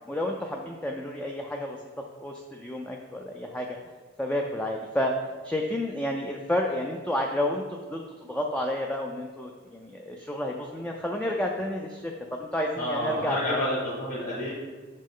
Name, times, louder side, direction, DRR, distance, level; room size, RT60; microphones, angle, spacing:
voice 1, 0.1-1.8 2.2-3.8 4.2-5.1 5.4-13.6, left 1 dB, 5° left, 1 dB, 0.3 m, -30 dB
voice 2, 12.8-14.5, left 1 dB, 40° left, -10 dB, 1.6 m, -29 dB
6.1 x 5.2 x 3.7 m, 1.5 s
head